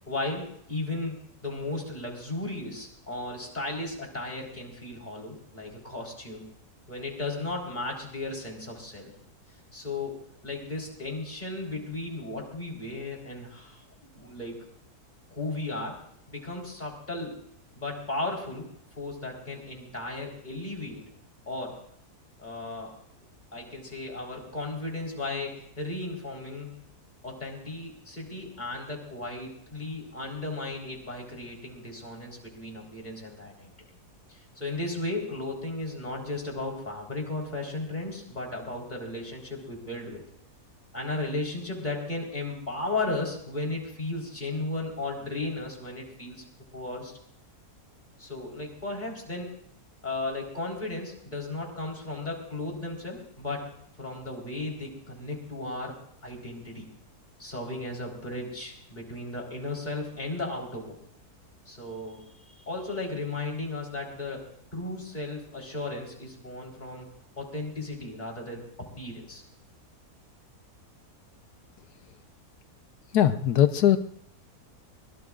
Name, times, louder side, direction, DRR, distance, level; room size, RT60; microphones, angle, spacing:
voice 1, 0.1-6.4 6.9-9.1 9.7-10.2 10.4-13.8 14.1-14.5 15.3-16.0 16.3-17.4 17.8-18.7 19.0-21.0 21.5-21.8 22.4-22.9 23.5-26.8 27.2-33.7 34.3-40.2 40.9-46.4 46.7-47.2 48.2-49.5 50.0-53.7 54.0-55.9 56.2-56.9 57.4-61.0 61.7-64.4 64.7-67.1 67.4-68.6 69.0-69.4, left 2 dB, 30° left, -1 dB, 4.2 m, -35 dB
voice 2, 73.1-74.0, left 11 dB, 90° left, 9 dB, 1.3 m, -20 dB
23.5 x 22.0 x 2.5 m, 0.71 s
omnidirectional pair, 1.6 m